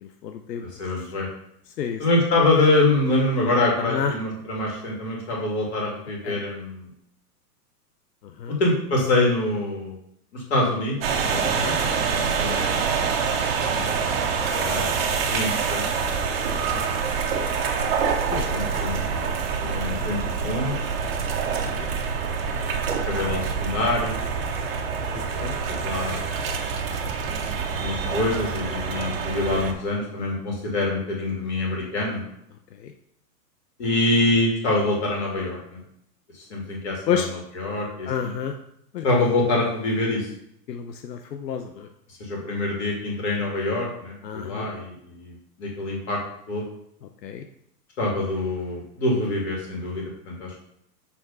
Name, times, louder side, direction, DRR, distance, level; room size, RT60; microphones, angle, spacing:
voice 1, 0.0-0.6 1.0-1.1 1.8-2.0 3.8-4.1 6.2-6.4 8.2-8.6 11.3-11.8 13.7-14.0 16.5-16.9 18.3-18.4 19.9-20.1 21.7-21.9 25.1-25.6 28.0-28.1 32.7-32.9 37.1-37.3 38.1-38.6 38.9-39.0 40.7-41.9 44.2-44.7 47.2-47.4, left 8 dB, 80° left, 5 dB, 0.9 m, -30 dB
voice 2, 0.6-1.3 2.0-6.9 8.5-10.0 10.3-11.0 12.1-12.9 14.5-15.9 18.3-20.8 22.8-24.1 25.3-26.2 27.4-32.3 33.8-35.8 36.3-37.2 37.6-38.3 39.0-40.3 42.2-46.2 46.5-46.6 48.0-50.6, left 2 dB, 40° left, -1 dB, 2.4 m, -25 dB
sound 1, 11.0-29.7, right 6 dB, 35° right, 0.9 m, -26 dB
7.2 x 3.5 x 5.5 m, 0.75 s
supercardioid pair, 180°, 48 cm